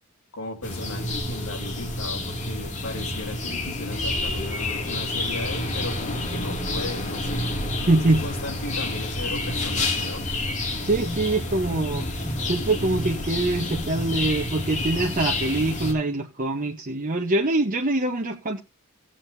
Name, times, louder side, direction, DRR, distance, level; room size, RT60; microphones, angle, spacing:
voice 1, 0.3-7.5 8.1-10.2, left 2 dB, 70° left, 3.4 m, -36 dB
sound 1, 0.6-15.9, left 2 dB, 35° left, 2.4 m, -29 dB
voice 2, 7.9-8.2 10.8-12.1 12.5-18.6, right 2 dB, 40° right, 0.9 m, -24 dB
sound 2, 10.4-10.6 11.0-11.2 11.7-12.5 13.4-14.1 14.6-15.5, left 1 dB, 10° left, 5.6 m, -36 dB
17.5 x 7.5 x 2.6 m
head